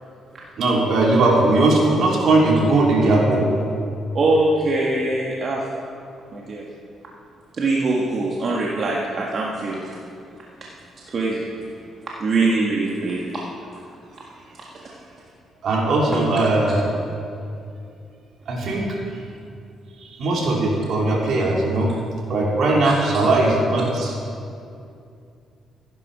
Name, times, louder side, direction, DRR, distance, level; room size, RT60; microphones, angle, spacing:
voice 1, 0.6-3.4 15.6-16.9 18.5-19.0 20.2-21.9 22.3-24.2, right 2 dB, 65° right, -2 dB, 3.2 m, -19 dB
voice 2, 4.1-5.7 6.3-6.6 7.6-9.9 11.1-11.4 12.2-13.4 22.8-22.9, right 2 dB, 50° right, -3 dB, 1.7 m, -22 dB
15.0 x 11.0 x 5.6 m, 2.5 s
cardioid pair, 90°, 0 cm